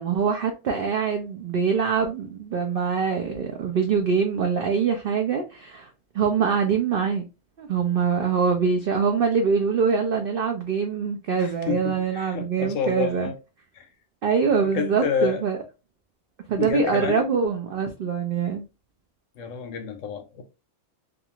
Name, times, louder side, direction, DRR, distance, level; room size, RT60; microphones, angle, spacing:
voice 1, 0.0-7.3 7.6-13.3 14.2-15.6 16.5-18.6, right 6 dB, 80° right, 0.5 m, -24 dB
voice 2, 11.4-13.4 13.7-13.9 14.6-15.4 16.6-17.3 19.4-20.4, left 7 dB, 70° left, 0.9 m, -29 dB
2.5 x 2.4 x 2.8 m
omnidirectional pair, 1.5 m